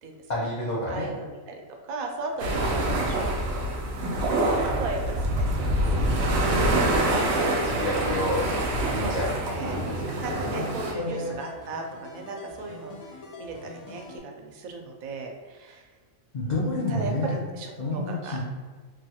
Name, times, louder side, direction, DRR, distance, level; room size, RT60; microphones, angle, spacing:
voice 1, 0.3-1.1 2.6-3.0 7.0-8.4 8.9-10.7 10.9-11.4 16.3-17.4 17.8-18.4, left 1 dB, 60° left, -6 dB, 0.4 m, -30 dB
voice 2, 0.9-6.5 9.0-15.9 16.4-16.5 16.9-18.4, right 3 dB, 85° right, 2 dB, 1.0 m, -37 dB
sound 1, 2.4-10.9, right 1 dB, 65° right, 0.7 m, -26 dB
sound 2, 5.7-14.2, left 3 dB, 80° left, 1.0 m, -45 dB
3.2 x 2.3 x 2.8 m, 1.4 s
omnidirectional pair, 1.4 m